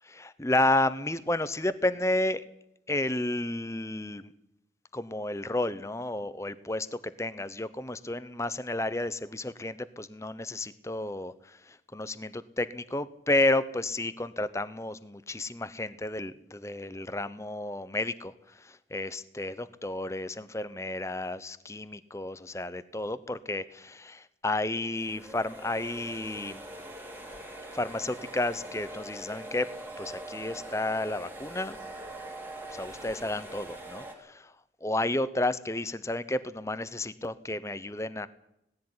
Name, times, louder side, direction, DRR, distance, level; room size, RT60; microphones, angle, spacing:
voice 1, 0.0-2.4 2.9-4.3 4.9-18.3 18.6-26.6 27.7-29.7 30.0-31.8 32.7-34.5 34.8-38.3, left 2 dB, 15° left, 14 dB, 0.9 m, -31 dB
sound 1, 25.0-34.1, right 1 dB, 10° right, 3.2 m, -43 dB
18.5 x 15.0 x 9.7 m, 0.82 s
head